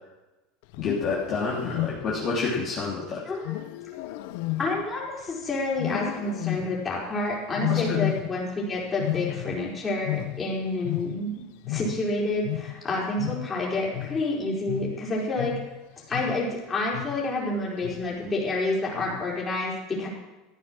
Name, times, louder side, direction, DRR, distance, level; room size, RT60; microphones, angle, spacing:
Wild animals, 0.6-2.4 3.4-5.3 5.8-7.0 7.6-8.6 8.9-11.4 11.6-16.6 16.9-17.4 17.8-18.2 19.0-19.4, left 17 dB, 70° left, 0.7 m, -32 dB
voice 1, 0.8-3.2 7.7-8.0, left 4 dB, 40° left, -6 dB, 3.1 m, -28 dB
voice 2, 3.3-3.7 4.6-11.3 11.7-15.5 16.1-20.1, left 2 dB, 20° left, -4 dB, 4.6 m, -29 dB
15.0 x 9.5 x 6.1 m, 1.1 s
supercardioid pair, 140°, 0 cm